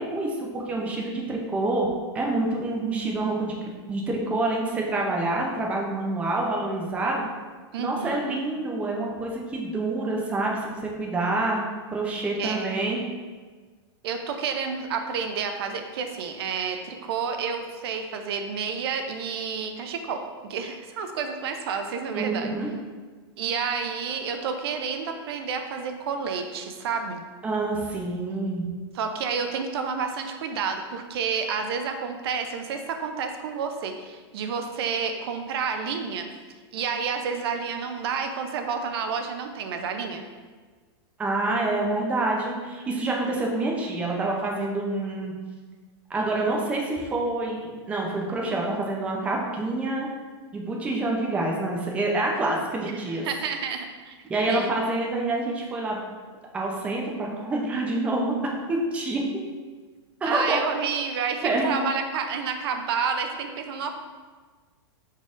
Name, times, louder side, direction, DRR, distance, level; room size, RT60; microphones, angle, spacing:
voice 1, 0.0-1.9 2.1-7.2 7.8-11.6 11.9-13.0 22.1-22.7 27.4-28.6 41.2-45.3 46.1-50.1 50.5-53.3 54.3-56.0 56.5-58.4 58.7-59.2 60.2-60.6 61.4-61.8, right 2 dB, 10° right, -1 dB, 0.5 m, -27 dB
voice 2, 7.7-8.4 12.4-12.8 14.0-22.5 23.4-27.2 28.9-36.3 36.7-40.3 52.8-52.9 53.2-54.2 54.5-54.7 60.3-63.9, right 6 dB, 60° right, 6 dB, 0.5 m, -30 dB
5.1 x 4.0 x 2.4 m, 1.4 s
supercardioid pair, 155°, 14 cm